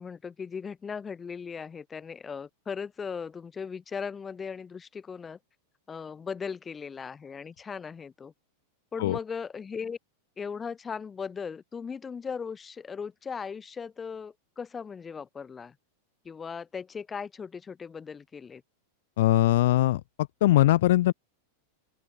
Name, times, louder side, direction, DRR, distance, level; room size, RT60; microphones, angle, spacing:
voice 1, 0.0-5.4 5.9-8.3 8.9-10.0 10.4-15.7 16.2-18.6, left 6 dB, 20° left, 7.2 m, -38 dB
voice 2, 19.2-21.1, left 15 dB, 55° left, 1.5 m, -21 dB
open air
figure-of-eight pair, 90°, 0 cm